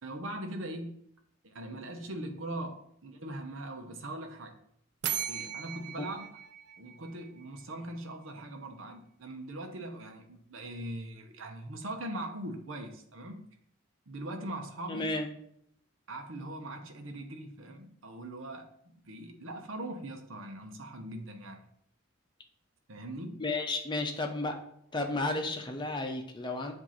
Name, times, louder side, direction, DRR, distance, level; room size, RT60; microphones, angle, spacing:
voice 1, 0.0-1.0 1.4-4.6 5.3-6.4 6.8-13.4 14.1-15.1 16.1-21.7 22.9-23.4, right 1 dB, 75° right, 4 dB, 0.9 m, -41 dB
sound 1, 5.0-7.8, right 8 dB, 55° right, 0.5 m, -38 dB
voice 2, 14.9-15.3 23.4-24.6 24.9-26.7, left 2 dB, 20° left, 3 dB, 0.8 m, -32 dB
7.6 x 2.7 x 5.6 m, 0.68 s
head